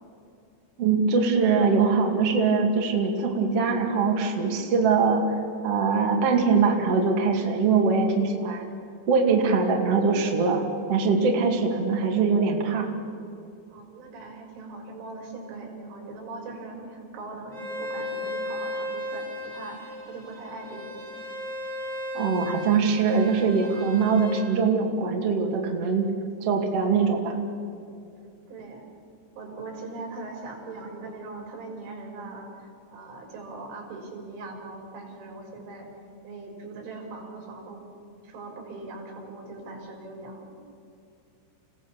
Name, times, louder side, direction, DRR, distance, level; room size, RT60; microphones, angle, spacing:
voice 1, 0.8-5.4 5.6-8.6 9.1-10.6 10.9-12.9 22.1-26.0 26.4-27.3, right 5 dB, 40° right, 1 dB, 2.6 m, -22 dB
voice 2, 13.7-21.0 28.5-28.8 29.4-35.9 36.2-37.9 38.2-40.6, right 3 dB, 80° right, 1 dB, 6.8 m, -40 dB
Bowed string instrument, 17.5-24.4, left 1 dB, 10° right, 4.0 m, -35 dB
29.5 x 17.0 x 7.2 m, 2.6 s
omnidirectional pair, 5.5 m